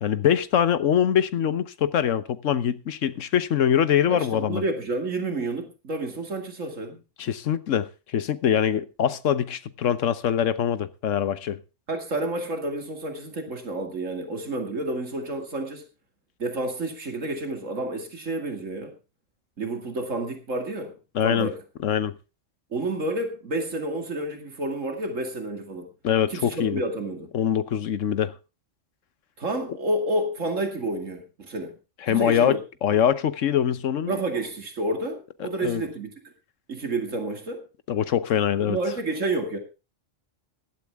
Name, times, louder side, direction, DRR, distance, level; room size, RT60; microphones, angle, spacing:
voice 1, 0.0-4.6 7.2-11.6 21.1-21.5 21.8-22.1 26.0-26.8 27.3-28.3 32.1-34.2 35.6-35.8 37.9-38.8, left 9 dB, 80° left, 1.3 m, -23 dB
voice 2, 4.1-7.0 11.9-15.8 16.4-18.9 19.6-20.9 21.2-21.6 22.7-25.9 26.3-27.3 29.4-31.7 32.1-32.6 34.1-36.1 36.7-37.6 38.6-39.6, right 2 dB, 90° right, 2.8 m, -30 dB
16.5 x 12.0 x 3.5 m
omnidirectional pair, 1.3 m